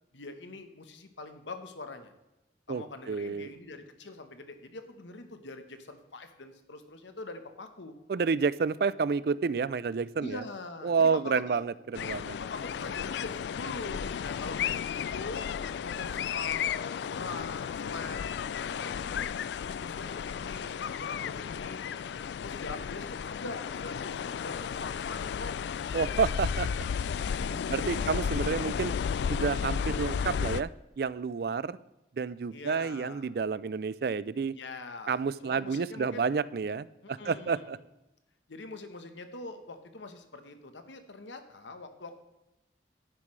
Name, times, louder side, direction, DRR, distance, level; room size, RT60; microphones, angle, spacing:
voice 1, 0.1-2.1 2.7-8.0 10.2-11.6 12.4-15.5 15.8-19.3 19.6-22.0 22.4-25.6 26.0-26.2 26.9-28.1 32.5-33.3 34.5-36.3 37.0-37.8 38.5-42.2, left 3 dB, 90° left, 8 dB, 1.1 m, -43 dB
voice 2, 2.7-3.5 8.1-10.4 10.8-12.4 25.9-26.7 27.7-28.9 29.3-30.7 31.0-31.8 32.2-34.5 35.1-37.8, right 5 dB, 55° right, 18 dB, 0.3 m, -29 dB
sound 1, 11.9-30.6, left 7 dB, 70° left, 0.3 m, -33 dB
11.0 x 9.6 x 3.2 m, 0.97 s
head